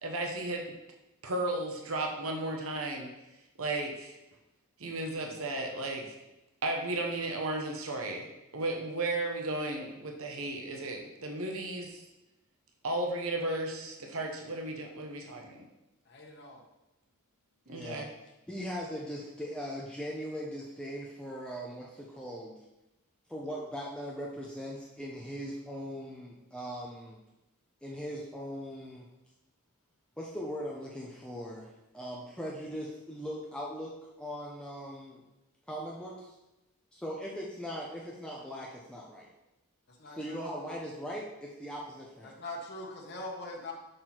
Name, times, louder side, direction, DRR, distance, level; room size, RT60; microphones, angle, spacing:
voice 1, 0.0-0.7 1.2-3.1 3.6-4.2 4.8-6.1 6.6-8.3 8.5-12.0 12.8-15.7 17.7-18.1, right 2 dB, 65° right, 2 dB, 1.1 m, -34 dB
voice 2, 16.0-16.6 39.9-40.5 42.2-43.7, left 2 dB, 50° left, -1 dB, 1.4 m, -42 dB
voice 3, 17.7-18.1 18.5-22.6 23.3-27.2 27.8-29.0 30.2-35.2 35.7-36.4 36.9-39.3 40.0-42.3, equal, 5° left, -3 dB, 0.8 m, -40 dB
6.5 x 6.2 x 4.4 m, 0.96 s
head